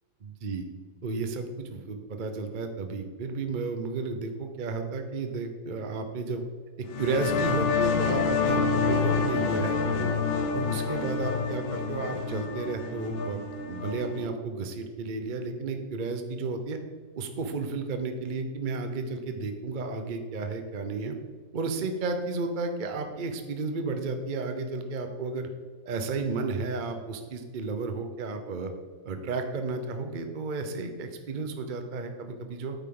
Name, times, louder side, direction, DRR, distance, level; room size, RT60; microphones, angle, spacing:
voice 1, 0.2-0.6 1.0-6.4 7.0-10.1 10.5-16.8 17.2-21.2 21.5-25.5 25.9-28.7 29.0-32.7, right 3 dB, 50° right, 6 dB, 0.5 m, -32 dB
sound 1, 6.9-14.3, left 5 dB, 80° left, 1.7 m, -28 dB
9.4 x 8.1 x 3.9 m, 1.5 s
omnidirectional pair, 2.2 m